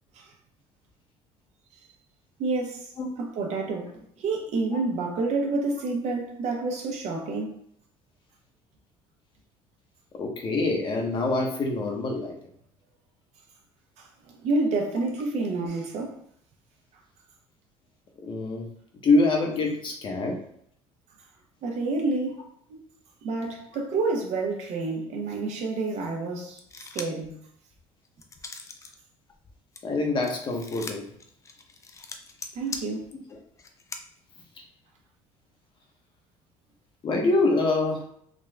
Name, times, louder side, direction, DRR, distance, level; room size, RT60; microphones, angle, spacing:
voice 1, 2.4-2.9 3.2-7.6 14.0-14.1 14.4-16.2 21.6-22.4 23.2-26.6 26.9-27.3 32.5-33.1, right 3 dB, 60° right, 1.0 m, -28 dB
voice 2, 10.2-12.3 18.2-18.7 19.0-20.4 29.8-31.1 37.0-38.0, left 2 dB, 40° left, 0.9 m, -25 dB
sound 1, 26.6-27.3 27.7-29.0 29.3-34.0, left 4 dB, 25° left, 0.4 m, -41 dB
3.8 x 2.4 x 3.3 m
cardioid pair, 120°, 13 cm